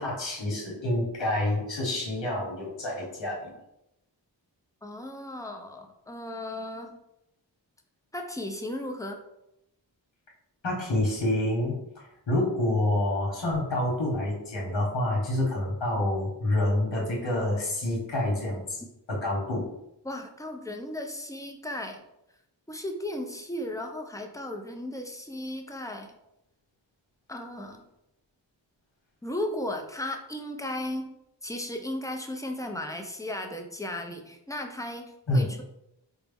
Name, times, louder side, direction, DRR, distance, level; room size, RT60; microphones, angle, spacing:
voice 1, 0.0-3.5 10.6-11.8 12.3-18.8 19.1-19.7 35.3-35.5, left 1 dB, 90° left, -3 dB, 1.0 m, -27 dB
voice 2, 4.8-7.0 8.1-9.2 20.0-22.0 22.7-26.1 27.3-27.8 29.2-31.1 31.4-35.6, left 1 dB, 10° left, 3 dB, 0.4 m, -35 dB
4.5 x 2.0 x 3.4 m, 0.84 s
wide cardioid pair, 60°, 44 cm